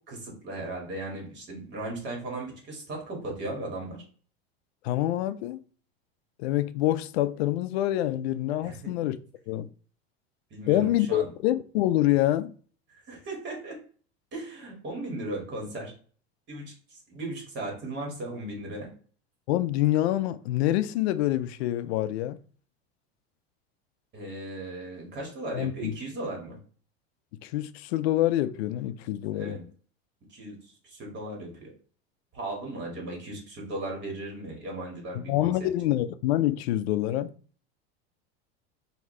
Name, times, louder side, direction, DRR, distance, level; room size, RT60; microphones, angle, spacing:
voice 1, 0.1-4.0 8.6-9.1 10.5-11.3 12.9-13.7 14.3-15.9 16.5-18.9 24.1-26.6 29.3-29.6 30.3-31.7 32.3-35.7, right 2 dB, 35° right, 2.1 m, -37 dB
voice 2, 4.8-5.6 6.4-9.2 9.5-9.7 10.7-12.5 19.5-22.4 25.5-25.9 27.4-29.6 35.1-37.3, left 14 dB, 80° left, 0.5 m, -26 dB
4.8 x 2.8 x 3.2 m
supercardioid pair, 125°, 31 cm